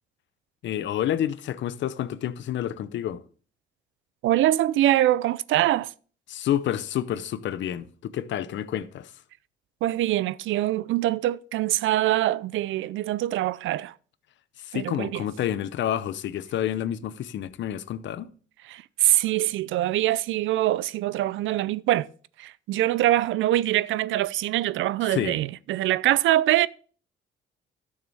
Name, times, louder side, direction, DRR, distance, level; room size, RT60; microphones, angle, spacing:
voice 1, 0.6-3.2 6.3-9.1 14.6-18.3 25.1-25.4, left 11 dB, 70° left, 0.7 m, -29 dB
voice 2, 4.2-5.9 9.8-13.9 14.7-15.2 18.6-22.1 22.4-26.7, right 14 dB, 75° right, 0.4 m, -24 dB
12.0 x 6.5 x 3.4 m
cardioid pair, 90°, 20 cm